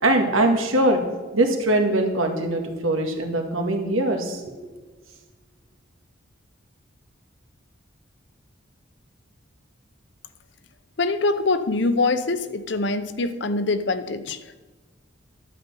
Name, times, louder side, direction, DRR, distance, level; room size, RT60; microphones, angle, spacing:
voice 1, 0.0-1.0 1.3-4.4, right 1 dB, 90° right, 4 dB, 1.8 m, -22 dB
voice 2, 11.0-14.6, left 3 dB, 60° left, 12 dB, 0.7 m, -24 dB
12.0 x 5.1 x 8.3 m, 1.3 s
head